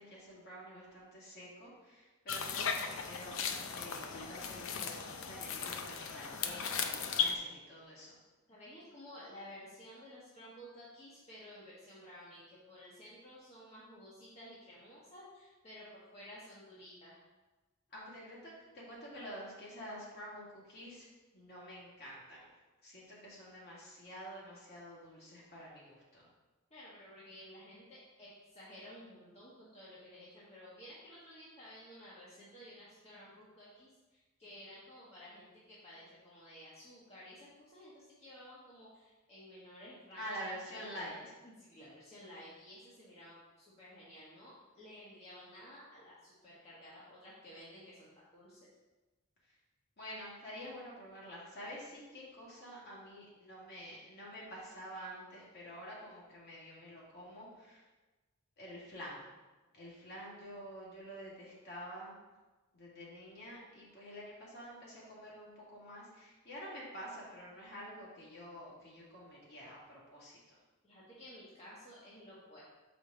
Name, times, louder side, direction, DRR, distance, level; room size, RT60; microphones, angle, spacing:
voice 1, 0.0-8.2 17.9-21.1 21.3-22.5 22.8-26.3 40.2-41.3 49.5-49.6 50.0-57.8 58.6-59.3 59.7-62.1 62.7-70.6, equal, 50° left, -5 dB, 2.3 m, -48 dB
sound 1, 2.3-7.3, left 6 dB, 65° left, 0.5 m, -37 dB
voice 2, 8.5-17.2 26.7-48.6 70.8-72.6, equal, 30° left, -8 dB, 1.3 m, -53 dB
6.9 x 5.0 x 3.9 m, 1.2 s
head